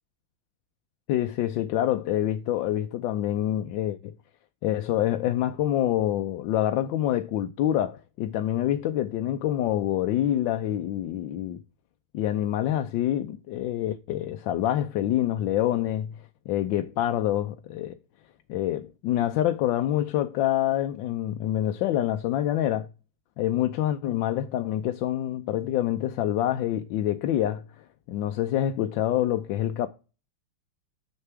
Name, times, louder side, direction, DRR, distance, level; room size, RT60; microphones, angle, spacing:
voice 1, 1.1-4.2 4.6-11.6 12.1-16.2 16.5-18.0 18.5-22.9 23.4-29.9, left 12 dB, 75° left, 1.3 m, -26 dB
6.9 x 6.6 x 4.6 m
omnidirectional pair, 2.1 m